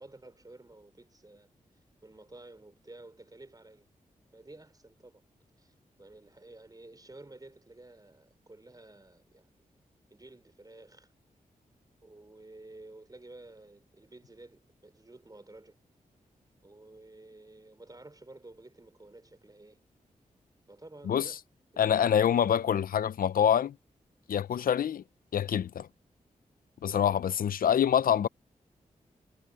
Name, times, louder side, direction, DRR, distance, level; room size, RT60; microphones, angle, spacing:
voice 1, 0.0-1.5 2.0-3.9 4.3-5.2 5.6-5.7 6.0-9.5 10.1-11.1 12.0-15.8 16.6-19.8 20.7-21.4 21.7-21.9, right 2 dB, 25° right, 4.5 m, -52 dB
voice 2, 21.8-23.7 24.3-25.0 25.3-25.9 26.8-28.3, left 9 dB, 80° left, 0.6 m, -26 dB
cardioid pair, 50°, 15 cm